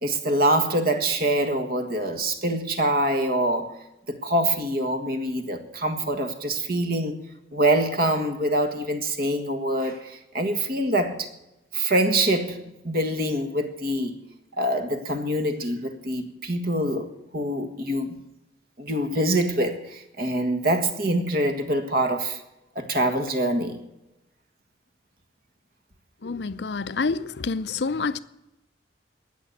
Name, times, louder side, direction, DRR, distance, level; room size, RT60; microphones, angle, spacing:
voice 1, 0.0-3.8 4.1-7.2 7.5-11.3 11.7-14.2 14.6-18.2 18.8-22.4 22.8-23.8, right 1 dB, 55° right, 1.7 m, -25 dB
voice 2, 26.2-28.2, left 4 dB, 70° left, 0.6 m, -28 dB
18.5 x 6.9 x 8.5 m
head